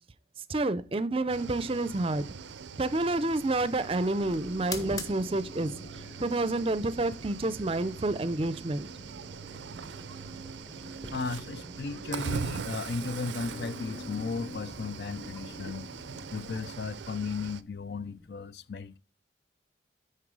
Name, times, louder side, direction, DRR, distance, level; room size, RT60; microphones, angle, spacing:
voice 1, 0.5-2.2 2.8-5.7 6.2-8.9, right 2 dB, 30° right, 0.5 m, -29 dB
Cricket / Waves surf, 1.3-17.6, right 5 dB, 85° right, 0.5 m, -42 dB
sound 1, 1.6-12.7 13.4-18.3, left 3 dB, 45° left, 1.3 m, -51 dB
sound 2, 2.9-18.2, left 1 dB, 20° left, 1.0 m, -47 dB
voice 2, 11.1-15.9 16.3-19.0, left 4 dB, 65° left, 0.5 m, -35 dB
9.9 x 4.6 x 4.7 m
head